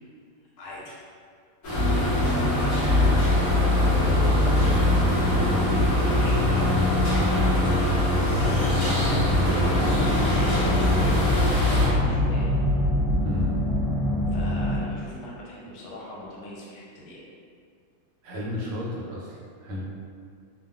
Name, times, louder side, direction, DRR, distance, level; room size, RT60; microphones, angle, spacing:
voice 1, 0.6-1.0 2.0-5.0 5.4-6.8 7.3-8.0 8.3-11.2 11.6-12.9 14.3-17.2, left 1 dB, 80° left, -5 dB, 1.4 m, -40 dB
sound 1, 1.6-11.9, right 1 dB, 55° left, 0.8 m, -26 dB
sound 2, 1.7-14.8, left 2 dB, 55° right, 1.0 m, -23 dB
voice 2, 5.4-5.8 7.1-7.4 13.2-13.6 18.2-19.8, left 1 dB, 80° right, -4 dB, 1.5 m, -32 dB
3.4 x 2.1 x 2.3 m, 2.2 s
omnidirectional pair, 2.4 m